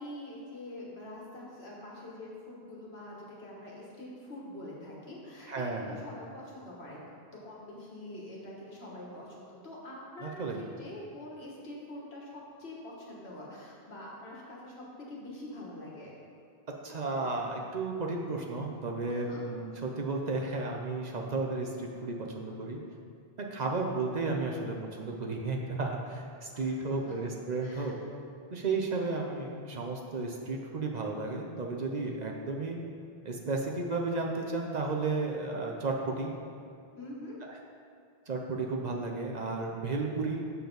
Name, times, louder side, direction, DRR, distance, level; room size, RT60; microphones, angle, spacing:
voice 1, 0.0-16.1 19.1-19.4 26.5-27.2 27.6-28.0 37.0-37.4, left 1 dB, 80° left, -4 dB, 1.7 m, -45 dB
voice 2, 5.5-6.0 10.2-10.7 16.8-22.8 23.4-27.9 28.5-32.8 33.2-36.3 37.5-37.6 38.3-40.4, right 3 dB, 50° right, 0 dB, 0.7 m, -33 dB
6.8 x 6.7 x 3.9 m, 2.4 s
omnidirectional pair, 1.0 m